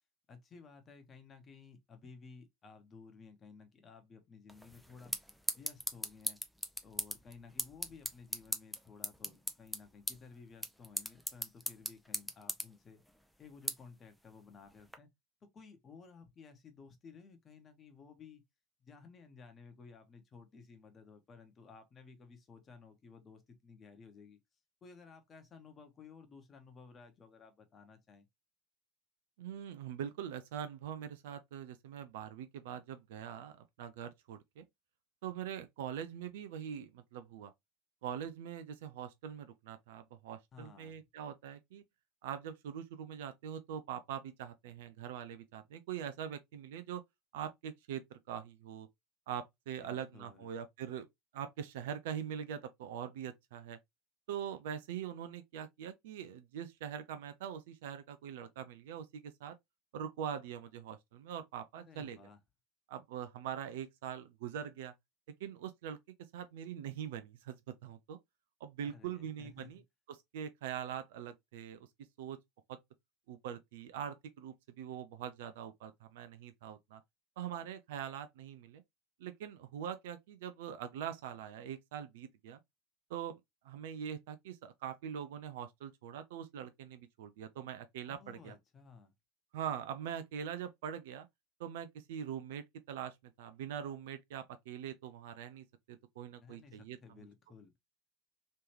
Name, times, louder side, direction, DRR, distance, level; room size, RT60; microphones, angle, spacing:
voice 1, 0.3-5.1 5.5-6.4 6.8-13.0 13.4-15.1 15.5-18.4 18.8-24.4 24.8-28.2 40.5-41.0 49.8-50.5 61.7-62.4 68.8-69.7 88.0-89.1 96.4-97.7, left 5 dB, 30° left, 1.0 m, -56 dB
sound 1, 4.5-15.0, equal, ahead, 0.6 m, -42 dB
voice 2, 29.4-33.5 33.8-34.6 35.2-37.5 38.0-41.8 42.2-47.0 47.3-48.9 49.3-51.1 51.3-53.8 54.3-59.6 59.9-62.2 62.9-64.9 65.4-66.0 66.3-67.6 67.8-68.2 68.6-69.8 70.1-71.9 72.2-72.4 72.7-72.8 73.3-77.0 77.4-78.8 79.2-82.6 83.1-83.3 83.6-88.5 89.5-91.3 91.6-97.0, right 9 dB, 65° right, 0.4 m, -43 dB
3.2 x 3.0 x 2.9 m
figure-of-eight pair, 70°, 0 cm